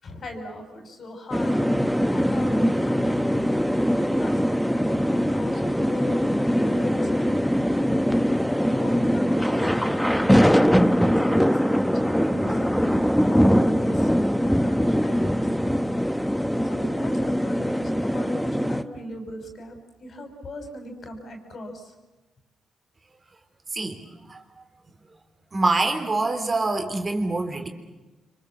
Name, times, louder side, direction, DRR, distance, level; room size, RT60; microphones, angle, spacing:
voice 1, 0.0-1.6 2.1-3.4 3.7-7.5 8.7-10.7 11.2-15.3 16.6-21.9, left 1 dB, 55° left, 5 dB, 6.1 m, -38 dB
sound 1, 1.3-18.8, equal, ahead, 1.1 m, -22 dB
voice 2, 25.5-27.7, right 2 dB, 35° right, 5 dB, 3.5 m, -25 dB
26.5 x 24.0 x 7.5 m, 1.1 s
cardioid pair, 75°, 0 cm